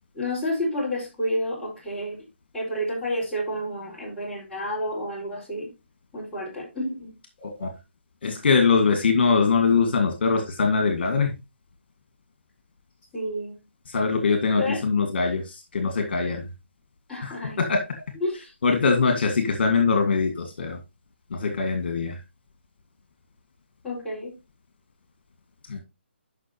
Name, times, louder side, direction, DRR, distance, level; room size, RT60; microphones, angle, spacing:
voice 1, 0.1-2.2 2.5-5.7 6.1-7.1 13.1-13.6 14.6-14.8 17.1-17.6 18.1-18.5 23.8-24.4, equal, 5° left, 4.6 m, -30 dB
voice 2, 7.4-7.7 8.2-11.4 13.9-16.4 17.2-17.3 17.7-17.8 18.6-20.8 21.3-22.2 25.7-25.8, left 4 dB, 55° left, 2.0 m, -22 dB
12.0 x 5.8 x 2.9 m
hypercardioid pair, 155°, 7 cm